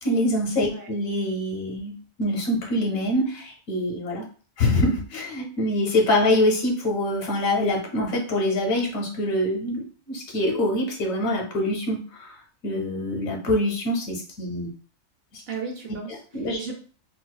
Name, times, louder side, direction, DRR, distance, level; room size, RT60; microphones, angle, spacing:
voice 1, 0.0-4.2 4.6-12.3 12.6-14.7 15.3-15.4 16.3-16.6, left 1 dB, 85° left, 0 dB, 1.2 m, -25 dB
voice 2, 15.5-16.7, right 5 dB, 60° right, 2 dB, 0.7 m, -35 dB
3.9 x 2.3 x 2.3 m, 0.40 s
omnidirectional pair, 1.4 m